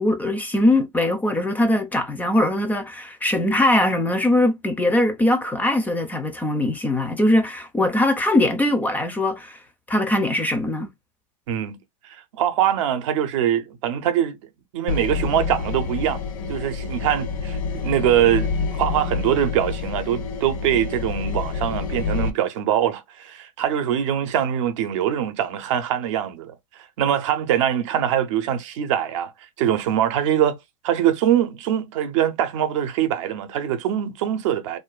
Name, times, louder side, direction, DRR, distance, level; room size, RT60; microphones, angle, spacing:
voice 1, 0.0-9.6 9.9-10.9, left 1 dB, 10° left, 0.4 m, -21 dB
voice 2, 11.5-14.4 14.7-16.2 16.5-29.3 29.6-30.6 30.8-34.8, right 10 dB, 65° right, 0.6 m, -23 dB
sound 1, 14.9-22.3, left 5 dB, 80° left, 0.7 m, -27 dB
2.5 x 2.3 x 2.2 m
supercardioid pair, 130°, 17 cm